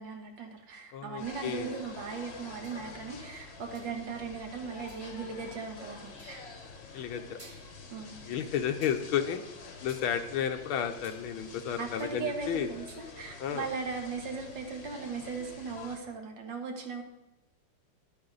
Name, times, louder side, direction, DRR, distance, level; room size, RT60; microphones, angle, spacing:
voice 1, 0.0-6.4 7.9-8.2 11.8-17.0, right 5 dB, 65° right, 4 dB, 1.9 m, -38 dB
voice 2, 0.9-1.7 6.9-7.4 8.2-9.4 9.8-12.7 13.4-13.7, left 8 dB, 90° left, 6 dB, 1.6 m, -32 dB
sound 1, 1.2-16.0, left 4 dB, 40° left, 1.1 m, -48 dB
sound 2, 2.6-2.9 3.7-4.0 4.9-5.1 6.2-6.4 7.0-7.1 7.4-7.9 8.8-9.1 9.9-11.2 11.5-12.2 12.6-13.1, right 1 dB, 15° right, 1.5 m, -55 dB
11.0 x 8.8 x 3.9 m, 0.99 s
omnidirectional pair, 2.2 m